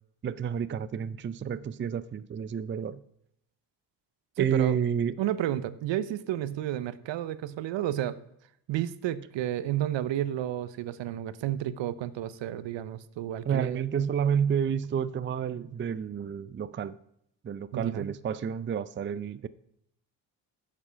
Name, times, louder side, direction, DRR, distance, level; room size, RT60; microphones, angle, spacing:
voice 1, 0.2-3.0 4.4-5.2 13.5-17.0 17.4-19.5, right 8 dB, 25° right, 0.5 m, -30 dB
voice 2, 4.4-4.8 5.2-8.2 8.7-13.8 17.7-18.1, right 12 dB, 65° right, 0.8 m, -31 dB
11.0 x 7.6 x 5.7 m
supercardioid pair, 70°, 47 cm